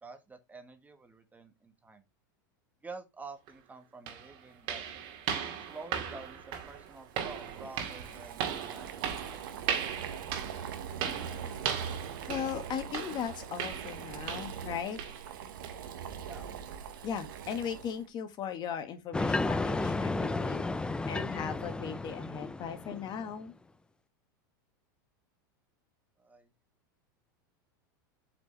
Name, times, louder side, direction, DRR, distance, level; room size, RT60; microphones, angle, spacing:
voice 1, 0.0-2.0 2.8-4.8 5.7-6.4 6.7-9.7 16.2-16.5 26.2-26.5, right 3 dB, 15° right, 1.4 m, -48 dB
sound 1, 3.5-3.6 4.1-14.7 15.0-15.3 15.6-15.8 16.3-16.4 16.9-17.0, right 8 dB, 55° right, 2.1 m, -38 dB
Boiling, 6.8-18.1, right 7 dB, 80° right, 1.3 m, -42 dB
voice 2, 12.3-15.0 17.0-20.7 21.1-23.5, left 8 dB, 40° left, 1.5 m, -38 dB
sound 2, 19.1-23.3, left 2 dB, 10° left, 0.5 m, -33 dB
8.1 x 5.1 x 3.2 m
hypercardioid pair, 105°, 11 cm